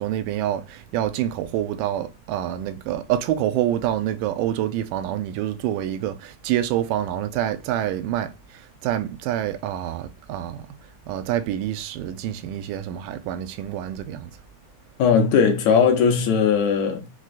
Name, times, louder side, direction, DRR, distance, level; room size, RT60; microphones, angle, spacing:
voice 1, 0.0-10.7 11.1-14.3, right 12 dB, 90° right, 2.1 m, -27 dB
voice 2, 15.0-17.0, left 6 dB, 75° left, 1.8 m, -18 dB
5.9 x 2.1 x 2.4 m
omnidirectional pair, 3.6 m